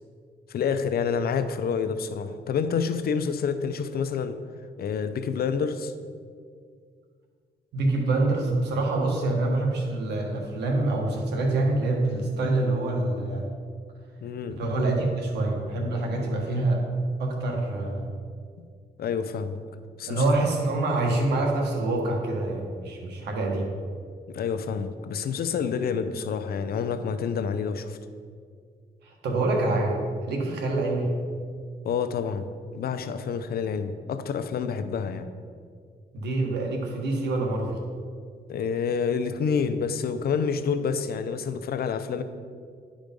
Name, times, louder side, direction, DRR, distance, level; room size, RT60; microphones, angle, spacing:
voice 1, 0.5-4.4 4.8-5.9 14.2-14.6 19.0-19.6 20.0-20.3 24.3-28.0 31.8-32.5 32.7-35.3 38.5-42.2, left 6 dB, 65° left, 10 dB, 0.6 m, -28 dB
voice 2, 7.7-13.5 14.5-16.8 17.2-18.1 20.1-23.7 29.0-30.0 30.2-31.1 36.1-37.8, right 2 dB, 90° right, 1 dB, 1.5 m, -26 dB
10.5 x 5.1 x 5.2 m, 2.1 s
cardioid pair, 95°, 17 cm